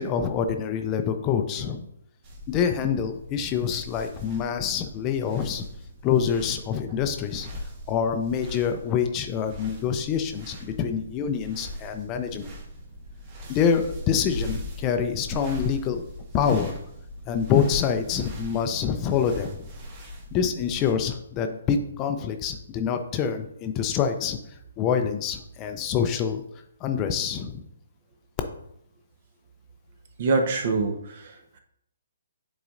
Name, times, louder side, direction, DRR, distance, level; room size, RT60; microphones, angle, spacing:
voice 1, 0.0-1.8 2.5-5.6 6.0-7.5 7.9-12.5 13.5-16.0 16.3-16.8 17.3-19.6 20.3-24.4 24.8-26.4 26.8-27.6, left 7 dB, 25° left, 7 dB, 0.5 m, -26 dB
sound 1, 2.2-20.9, left 1 dB, 35° right, 1.3 m, -40 dB
voice 2, 30.2-31.6, right 3 dB, 50° right, 5 dB, 0.9 m, -25 dB
9.4 x 4.0 x 2.5 m, 0.77 s
figure-of-eight pair, 135°, 0 cm